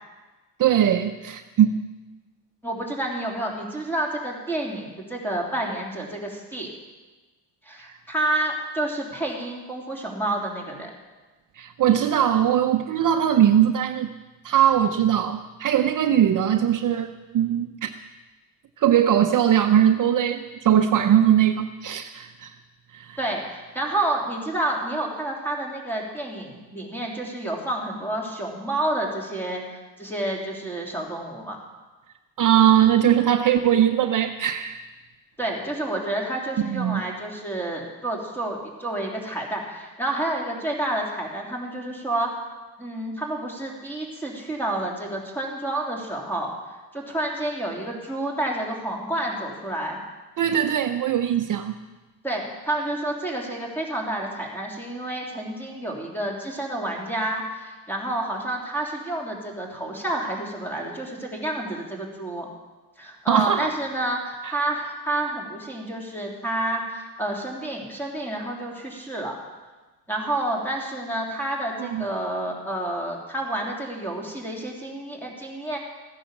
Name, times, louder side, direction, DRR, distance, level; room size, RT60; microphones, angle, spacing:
voice 1, 0.6-1.8 11.6-14.1 14.4-17.9 18.8-22.5 22.9-23.2 32.4-34.8 36.7-37.0 50.4-51.7 63.3-63.7 71.8-72.1, right 10 dB, 50° right, 7 dB, 0.7 m, -20 dB
voice 2, 2.6-6.7 7.6-10.9 23.2-31.6 35.4-42.3 42.8-46.5 46.9-50.0 52.2-62.5 63.0-69.3 70.1-75.8, right 1 dB, 5° left, -1 dB, 3.2 m, -29 dB
15.0 x 9.9 x 7.2 m, 1.2 s
cardioid pair, 120°, 41 cm